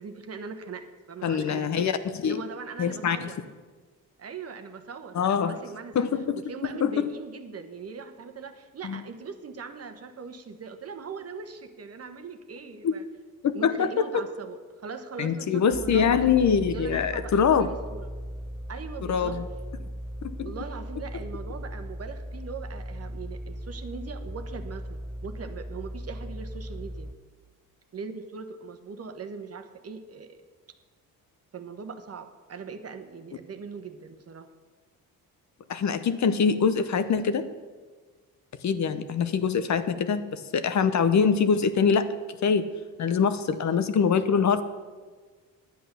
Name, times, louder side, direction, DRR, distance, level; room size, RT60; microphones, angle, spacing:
voice 1, 0.0-1.9 2.2-3.5 4.2-6.1 6.3-13.1 13.5-16.3 16.7-18.1 18.7-19.4 20.4-27.1 27.9-30.5 31.5-34.5 43.5-43.8, right 5 dB, 45° right, 8 dB, 1.1 m, -40 dB
voice 2, 1.2-1.9 2.2-2.4 2.8-3.3 5.1-5.6 5.9-6.4 6.8-7.1 8.8-9.0 12.8-12.9 13.4-14.2 15.2-17.7 19.1-19.5 20.2-20.5 35.7-37.5 38.6-42.1 42.4-42.7 43.0-44.6, left 6 dB, 55° left, 11 dB, 0.9 m, -24 dB
sound 1, 15.7-27.1, equal, 5° left, 0.3 m, -38 dB
10.5 x 8.2 x 6.7 m, 1.4 s
cardioid pair, 80°, 35 cm